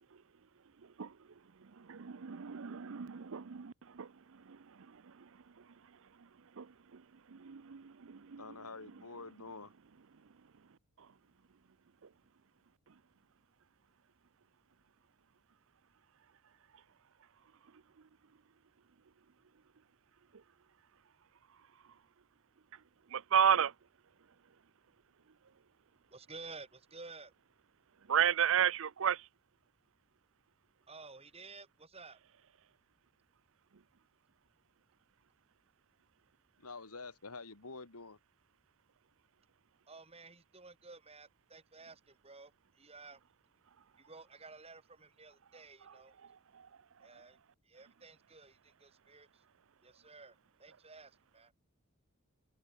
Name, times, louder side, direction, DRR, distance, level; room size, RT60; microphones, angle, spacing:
voice 1, 1.9-4.1 4.5-4.6 6.6-6.7 6.9-7.0 7.3-8.4 23.1-23.7 28.1-29.2, right 8 dB, 65° right, 0.6 m, -32 dB
voice 2, 8.4-9.7 36.6-38.2, left 3 dB, 90° left, 2.8 m, -47 dB
voice 3, 26.1-27.3 30.9-32.2 39.9-43.2 44.0-46.1 47.0-47.4 47.6-49.4 49.8-51.5, right 3 dB, 25° right, 7.8 m, -53 dB
head